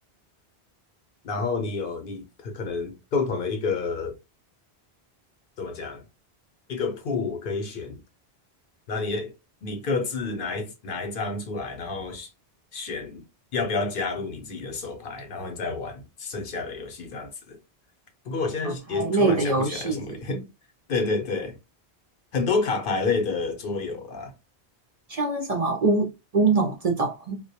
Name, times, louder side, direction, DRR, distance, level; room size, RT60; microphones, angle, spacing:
voice 1, 1.2-4.1 5.6-6.0 6.7-8.0 8.9-9.3 9.6-12.3 12.7-13.2 13.5-17.6 18.3-20.4 20.9-21.6 22.3-24.3, left 4 dB, 60° left, 0.7 m, -29 dB
voice 2, 18.6-20.4 25.1-27.4, right 3 dB, 50° right, 0.5 m, -24 dB
2.1 x 2.1 x 2.7 m
omnidirectional pair, 1.1 m